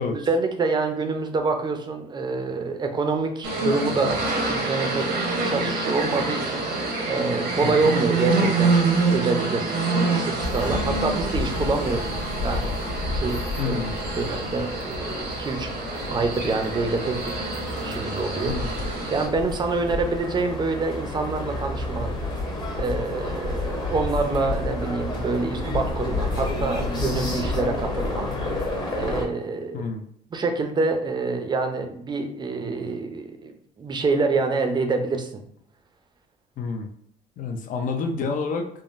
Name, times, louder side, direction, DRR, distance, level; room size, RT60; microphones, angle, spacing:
voice 1, 0.0-4.2 4.5-8.8 9.1-13.8 14.2-15.7 16.1-17.5 17.8-18.6 19.1-22.1 22.4-28.7 28.9-29.8 30.3-35.4, right 3 dB, 25° right, 5 dB, 0.5 m, -27 dB
sound 1, 3.4-19.3, right 3 dB, 80° right, 0.9 m, -26 dB
sound 2, 10.4-29.2, left 2 dB, 25° left, 0.9 m, -30 dB
voice 2, 13.6-13.9 18.5-18.7 29.7-30.0 36.6-36.9 37.4-38.7, left 4 dB, 50° left, 4 dB, 0.5 m, -28 dB
3.6 x 2.1 x 2.5 m, 0.67 s
cardioid pair, 110°, 17 cm